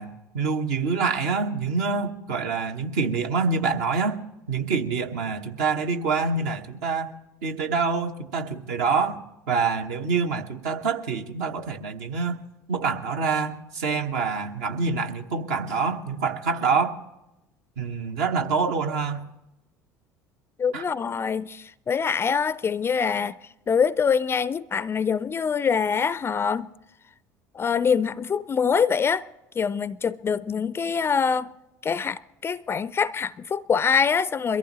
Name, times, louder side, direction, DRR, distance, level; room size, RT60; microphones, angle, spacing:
voice 1, 0.0-4.2 4.5-7.1 7.4-9.2 9.5-12.4 12.7-17.0 17.8-19.2 20.7-20.8, right 5 dB, 65° right, 1.1 m, -26 dB
voice 2, 20.6-23.3 23.7-26.7 27.6-29.2 29.6-31.5 31.8-34.6, left 6 dB, 25° left, 0.4 m, -24 dB
22.5 x 14.5 x 3.0 m
figure-of-eight pair, 65°, 9 cm